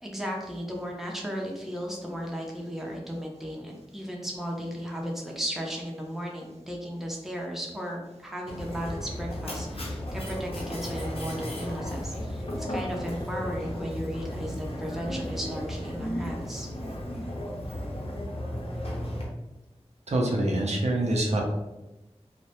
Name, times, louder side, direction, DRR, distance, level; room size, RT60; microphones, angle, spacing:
voice 1, 0.0-12.4 12.7-16.7, equal, 5° right, -2 dB, 0.5 m, -35 dB
Mechanisms, 8.5-19.2, equal, 60° left, 0.6 m, -34 dB
voice 2, 20.1-21.4, right 1 dB, 75° right, 0 dB, 0.5 m, -25 dB
2.2 x 2.1 x 2.8 m, 0.98 s
wide cardioid pair, 55°, 11 cm